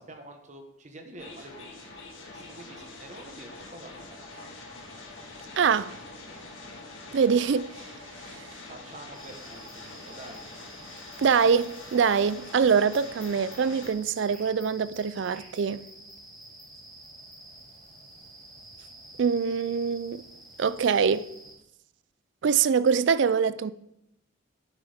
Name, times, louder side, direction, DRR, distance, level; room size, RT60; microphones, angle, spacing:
voice 1, 0.0-4.5 8.7-10.5, right 1 dB, 35° right, 1.2 m, -47 dB
sound 1, 1.2-13.9, left 3 dB, 70° left, 1.7 m, -45 dB
voice 2, 5.6-6.0 7.1-7.7 8.4-8.5 11.2-15.9 19.2-20.2 20.6-21.3 22.4-23.7, right 6 dB, 60° right, 0.3 m, -24 dB
sound 2, 9.1-21.5, right 1 dB, ahead, 3.9 m, -49 dB
9.8 x 8.8 x 3.6 m
head